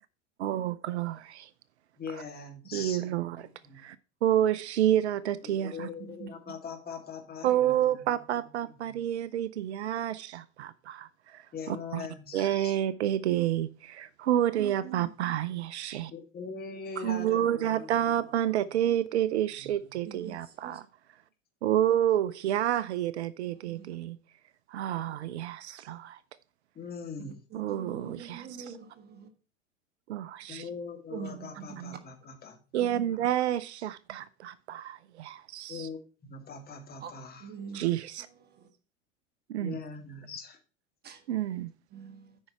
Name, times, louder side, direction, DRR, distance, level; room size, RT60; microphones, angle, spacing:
voice 1, 0.4-1.5 2.7-3.4 3.8-5.9 7.4-12.0 12.3-16.1 17.0-20.8 21.6-24.2 24.7-26.2 27.5-28.7 30.1-30.6 32.7-35.9 37.7-38.3 39.5-39.8 41.3-41.7, right 11 dB, 60° right, 0.6 m, -29 dB
voice 2, 2.0-3.9 5.4-8.0 8.6-9.0 11.5-12.8 16.1-18.2 18.6-18.8 19.6-19.8 26.7-27.4 30.5-32.6 33.1-33.2 35.7-37.5 39.6-40.6, left 5 dB, 25° left, 2.3 m, -42 dB
voice 3, 6.1-6.5 13.3-13.5 14.8-15.3 20.0-20.8 23.5-24.0 27.5-29.3 31.1-32.0 32.8-33.0 37.0-37.1 37.4-38.0 38.4-38.7 41.0-41.6 41.9-42.4, right 6 dB, 25° right, 1.6 m, -44 dB
8.7 x 5.4 x 5.6 m
figure-of-eight pair, 85°, 37 cm